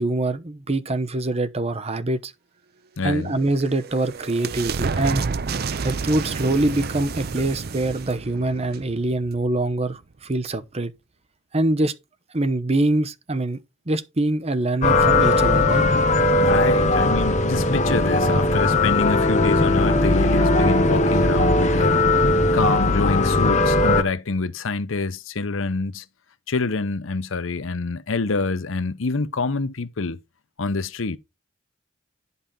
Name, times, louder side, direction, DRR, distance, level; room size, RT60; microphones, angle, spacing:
voice 1, 0.0-2.3 3.0-5.3 5.8-10.9 11.5-11.9 12.3-13.6 13.9-15.8, right 2 dB, 30° right, 0.9 m, -24 dB
voice 2, 3.0-3.3 16.4-22.2 22.5-26.1 26.5-30.2 30.6-31.2, left 3 dB, 85° left, 0.8 m, -26 dB
sound 1, 3.3-9.7, right 4 dB, 50° right, 0.6 m, -30 dB
sound 2, 14.8-24.0, left 2 dB, 40° left, 1.1 m, -19 dB
10.5 x 5.6 x 4.2 m
head